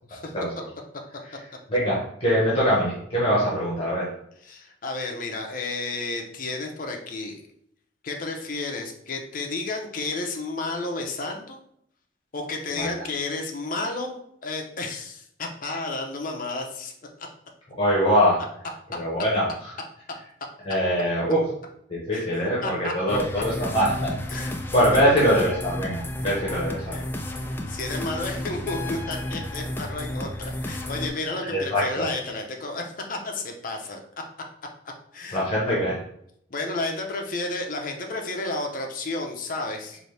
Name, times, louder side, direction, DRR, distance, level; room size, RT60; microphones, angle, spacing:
voice 1, 1.7-4.1 12.7-12.9 17.7-18.4 18.9-19.7 20.6-21.5 21.9-24.2 24.7-27.0 31.5-32.1 35.3-36.0, equal, 30° left, -6 dB, 1.0 m, -23 dB
voice 2, 4.4-7.4 8.0-11.6 12.3-16.9 22.1-22.3 22.6-23.4 24.3-24.5 26.9-27.0 27.7-34.0 35.1-35.5 36.5-40.0, left 2 dB, 45° left, 2 dB, 0.6 m, -32 dB
sound 1, 23.1-31.1, left 1 dB, 10° left, 0.3 m, -32 dB
4.1 x 2.7 x 3.3 m, 0.70 s
head